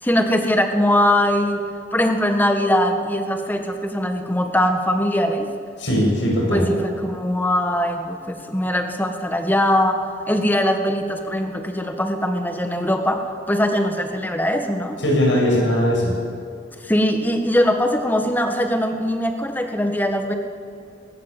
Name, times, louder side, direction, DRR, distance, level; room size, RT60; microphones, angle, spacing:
voice 1, 0.0-1.6 1.9-5.5 6.5-15.0 16.8-20.3, left 1 dB, 10° left, 5 dB, 1.6 m, -21 dB
voice 2, 5.8-6.7 15.0-16.1, equal, 90° left, -2 dB, 7.7 m, -19 dB
20.0 x 19.0 x 7.6 m, 2.4 s
head